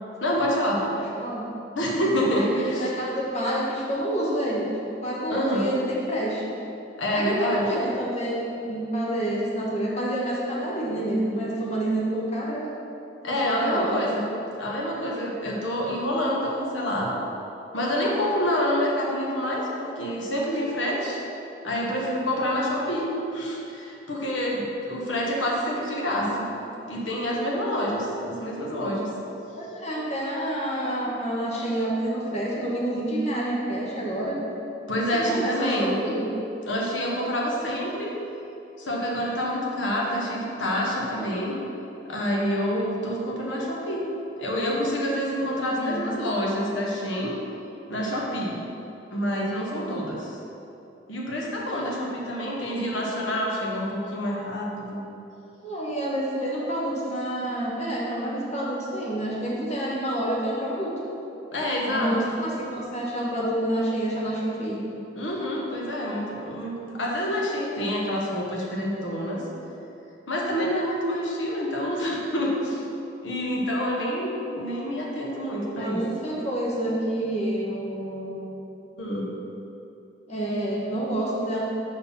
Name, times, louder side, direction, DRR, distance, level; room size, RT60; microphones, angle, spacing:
voice 1, 0.2-0.8 1.8-2.8 5.3-5.7 7.0-7.7 13.2-14.3 14.6-17.1 17.7-21.2 21.6-26.5 26.8-29.1 34.9-36.0 36.7-38.1 38.8-41.6 42.0-44.0 44.4-47.3 47.9-48.6 49.1-50.3 51.1-55.0 61.5-62.1 65.2-69.4 70.3-72.8 73.2-76.0 79.0-79.3, equal, 80° left, -2 dB, 1.1 m, -27 dB
voice 2, 0.9-1.4 2.3-4.6 5.0-6.4 7.1-12.7 13.2-13.9 27.9-28.0 29.5-34.4 35.0-36.2 43.1-43.2 45.7-46.0 55.6-60.9 61.9-64.8 75.8-78.4 80.3-81.6, right 1 dB, 40° left, -5 dB, 1.3 m, -28 dB
5.4 x 4.2 x 5.5 m, 2.8 s
head